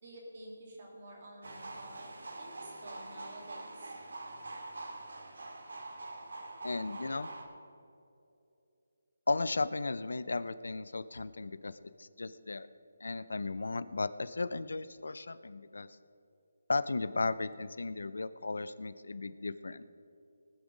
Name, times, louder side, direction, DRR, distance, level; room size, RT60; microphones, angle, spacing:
voice 1, 0.0-2.1 2.4-3.9, right 1 dB, 30° right, -1 dB, 2.5 m, -50 dB
sound 1, 1.4-7.4, right 2 dB, 75° right, 1.9 m, -45 dB
voice 2, 6.6-7.3 9.3-12.7 13.0-15.9 16.7-19.8, left 3 dB, 75° left, 15 dB, 0.5 m, -35 dB
19.5 x 7.1 x 5.2 m, 2.7 s
hypercardioid pair, 175°, 0 cm